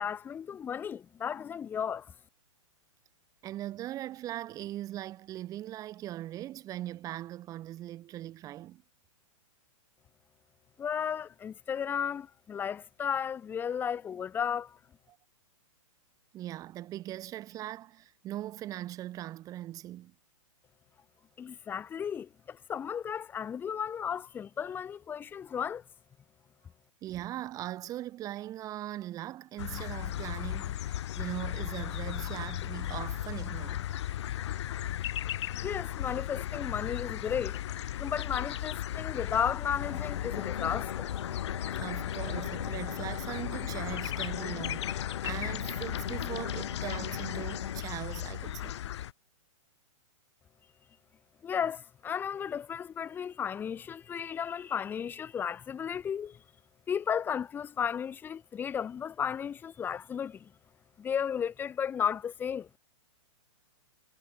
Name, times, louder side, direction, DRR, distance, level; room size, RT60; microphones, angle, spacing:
voice 1, 0.0-2.1 10.8-14.8 21.4-25.8 35.6-37.6 38.0-41.1 51.4-56.4 56.9-60.5 61.0-62.7, left 8 dB, 10° left, 1.3 m, -34 dB
voice 2, 3.4-8.8 15.1-15.2 16.3-20.1 27.0-33.9 41.7-48.7, right 13 dB, 20° right, 3.5 m, -40 dB
sound 1, 29.6-49.1, left 12 dB, 55° left, 3.7 m, -36 dB
sound 2, 39.8-47.8, left 8 dB, 85° left, 3.0 m, -40 dB
hypercardioid pair, 160°, 17 cm